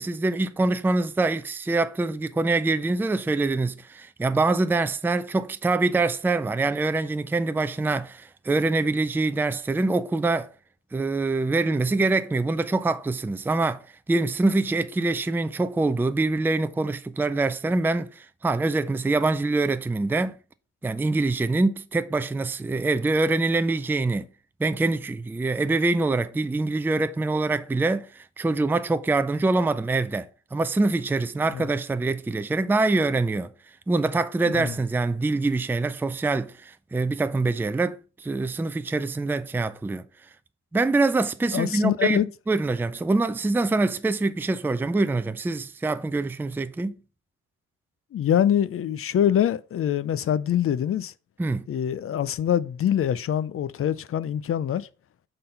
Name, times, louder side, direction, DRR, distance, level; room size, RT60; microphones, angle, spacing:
voice 1, 0.0-10.5 10.9-13.8 14.1-20.3 20.8-24.3 24.6-33.5 33.9-40.0 40.7-42.2 42.5-46.9 51.4-51.7, right 3 dB, 5° right, 0.4 m, -24 dB
voice 2, 41.5-42.3 48.1-51.1 51.7-54.9, left 10 dB, 45° left, 0.5 m, -24 dB
6.6 x 3.9 x 5.4 m
cardioid pair, 90°, 30 cm